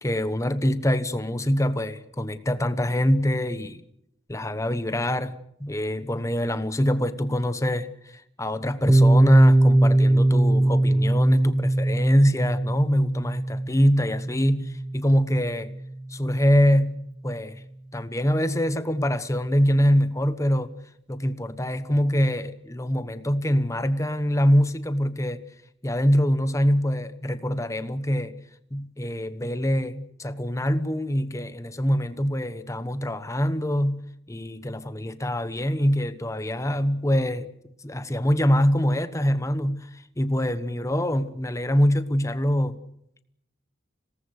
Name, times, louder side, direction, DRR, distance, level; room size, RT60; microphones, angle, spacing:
voice 1, 0.0-3.8 4.3-5.3 5.6-15.7 16.1-17.0 17.2-17.6 17.9-20.7 21.1-25.4 25.8-28.4 28.7-37.5 37.8-42.8, equal, 15° left, 1.1 m, -24 dB
Piano, 8.9-16.3, right 1 dB, 5° right, 1.2 m, -21 dB
26.5 x 18.5 x 6.6 m
head